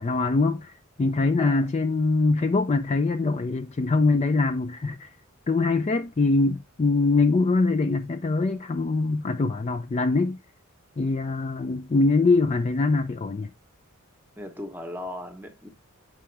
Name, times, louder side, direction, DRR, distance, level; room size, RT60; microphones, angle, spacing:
voice 1, 0.0-5.1 5.5-10.4 11.0-13.5, left 3 dB, 30° left, 0.4 m, -23 dB
voice 2, 14.4-15.7, left 1 dB, 10° right, 0.9 m, -37 dB
7.2 x 4.7 x 3.3 m
head